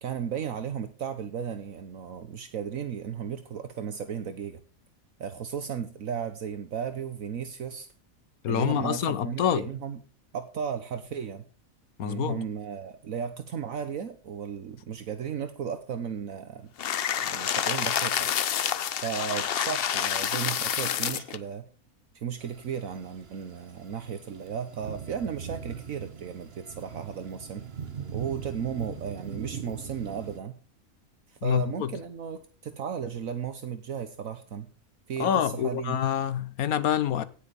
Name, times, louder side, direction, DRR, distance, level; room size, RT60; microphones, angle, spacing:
voice 1, 0.0-4.6 5.2-7.9 8.5-10.0 10.3-11.4 12.0-16.7 17.2-18.3 18.9-21.6 22.1-27.6 28.1-30.5 31.3-34.7 35.1-36.1, right 7 dB, 70° right, 1.4 m, -35 dB
voice 2, 8.4-9.7 12.0-12.4 31.4-31.9 35.2-37.2, left 10 dB, 90° left, 1.4 m, -26 dB
sound 1, 16.8-21.4, left 9 dB, 55° left, 0.7 m, -28 dB
sound 2, 22.4-30.4, right 7 dB, 45° right, 1.4 m, -41 dB
17.5 x 6.8 x 5.3 m
omnidirectional pair, 1.5 m